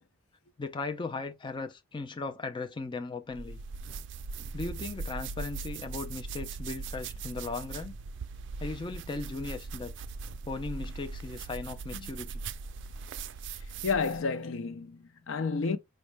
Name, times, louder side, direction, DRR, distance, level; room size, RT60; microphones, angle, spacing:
voice 1, 0.6-3.6 4.5-7.9 8.6-9.9 10.4-12.4, left 3 dB, 25° left, 0.5 m, -37 dB
sound 1, 3.3-14.3, right 4 dB, 60° right, 0.4 m, -40 dB
voice 2, 13.8-15.8, left 4 dB, 75° left, 0.5 m, -30 dB
5.2 x 2.2 x 3.3 m
head